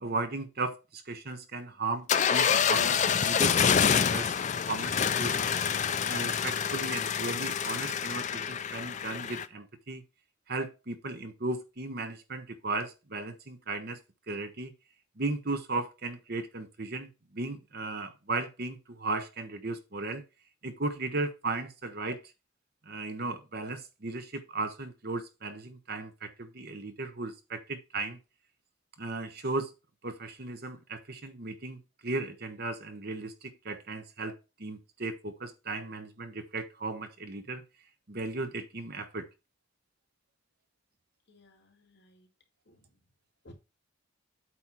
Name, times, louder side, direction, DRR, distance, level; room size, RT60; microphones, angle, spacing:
voice 1, 0.0-4.3 4.7-5.4 6.0-10.0 10.5-14.0 14.3-14.7 15.2-20.2 20.6-22.2 22.9-28.2 29.0-29.7 30.0-37.6 38.1-39.3, right 3 dB, 50° right, 1.0 m, -36 dB
sound 1, 2.1-9.5, left 7 dB, 35° left, 0.4 m, -27 dB
voice 2, 41.3-42.3 42.6-43.0 43.4-43.5, left 1 dB, 55° left, 2.1 m, -58 dB
8.4 x 3.1 x 5.8 m
head